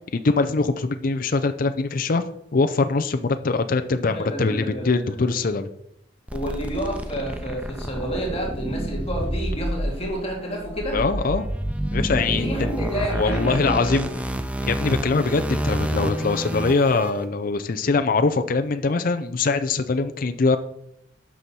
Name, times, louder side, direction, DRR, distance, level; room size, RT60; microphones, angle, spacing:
voice 1, 0.2-2.2 2.5-5.7 10.9-11.5 11.9-12.7 13.1-14.1 14.7-20.6, left 3 dB, 50° left, 8 dB, 0.5 m, -22 dB
voice 2, 4.0-5.3 6.3-11.0 12.4-14.0, right 1 dB, 35° left, 0 dB, 2.1 m, -30 dB
sound 1, 6.3-17.1, equal, 5° right, 0.6 m, -29 dB
12.0 x 6.2 x 4.3 m, 0.77 s
head